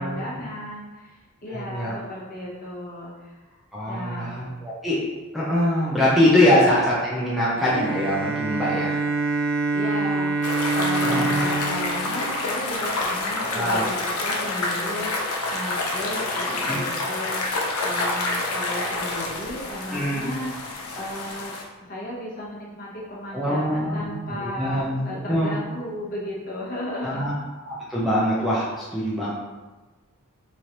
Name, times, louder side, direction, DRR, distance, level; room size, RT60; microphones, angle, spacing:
voice 1, 0.0-3.6 3.8-4.3 9.7-20.5 20.9-21.5 21.8-27.3, left 1 dB, 40° left, -5 dB, 0.9 m, -35 dB
voice 2, 1.5-1.9 3.7-5.0 5.3-8.9 11.0-11.4 13.5-13.9 16.7-16.8 19.9-20.3 23.3-25.0 25.3-25.5 27.0-27.3 27.6-29.3, left 1 dB, ahead, -8 dB, 0.5 m, -23 dB
Bowed string instrument, 7.6-13.3, right 3 dB, 60° right, 0.5 m, -26 dB
sound 1, 10.4-21.6, left 2 dB, 80° left, 0.6 m, -28 dB
3.8 x 3.1 x 2.8 m, 1.2 s
head